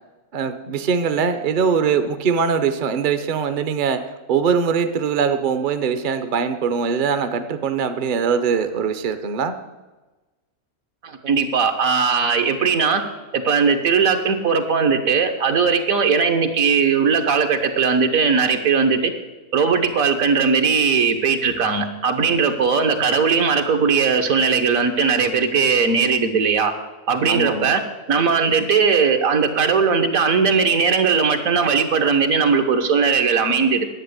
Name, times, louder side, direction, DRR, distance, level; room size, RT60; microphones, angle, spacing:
voice 1, 0.3-4.0 4.3-9.6 27.3-27.7, right 6 dB, 45° right, 9 dB, 0.7 m, -22 dB
voice 2, 11.0-13.0 13.3-19.1 19.5-26.7 27.1-27.8 28.1-33.9, right 5 dB, 70° right, 6 dB, 1.5 m, -19 dB
11.0 x 8.4 x 8.0 m, 1.2 s
omnidirectional pair, 1.5 m